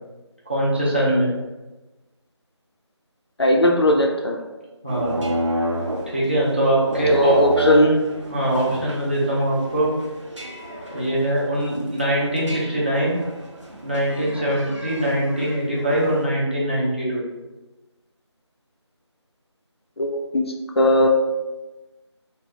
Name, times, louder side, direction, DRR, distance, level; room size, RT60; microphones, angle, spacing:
voice 1, 0.5-1.3 4.8-5.2 6.1-7.4 8.3-9.9 10.9-13.2 13.8-17.2, right 1 dB, 25° right, -7 dB, 0.5 m, -22 dB
voice 2, 3.4-4.4 7.1-8.0 20.0-21.1, left 1 dB, 60° left, 1 dB, 0.4 m, -18 dB
sound 1, 4.9-16.3, right 1 dB, 85° right, 0.6 m, -30 dB
2.8 x 2.1 x 2.8 m, 1.1 s
figure-of-eight pair, 165°, 15 cm